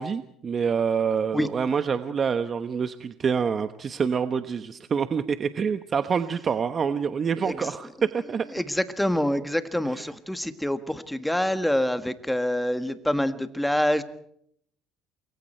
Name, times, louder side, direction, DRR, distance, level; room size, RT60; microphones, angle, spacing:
voice 1, 0.0-8.5 9.9-10.1, right 6 dB, 35° right, 10 dB, 1.1 m, -26 dB
voice 2, 8.5-14.0, left 1 dB, 5° left, 10 dB, 1.7 m, -26 dB
28.5 x 22.5 x 4.5 m, 0.69 s
cardioid pair, 110°, 0 cm